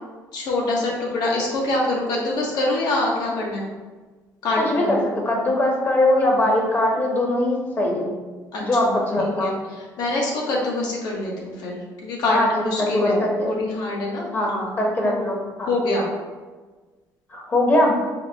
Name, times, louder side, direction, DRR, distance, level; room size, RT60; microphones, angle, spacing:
voice 1, 0.3-3.7 4.4-4.9 8.5-9.5 10.0-14.7 15.0-15.1 15.7-16.1, left 2 dB, 70° left, -2 dB, 1.0 m, -25 dB
voice 2, 4.6-8.1 8.6-9.5 12.3-12.5 12.8-13.5 14.3-14.5 14.8-15.7 17.3-18.0, left 1 dB, 30° left, -1 dB, 0.9 m, -21 dB
4.2 x 2.2 x 3.4 m, 1.3 s
cardioid pair, 115°, 7 cm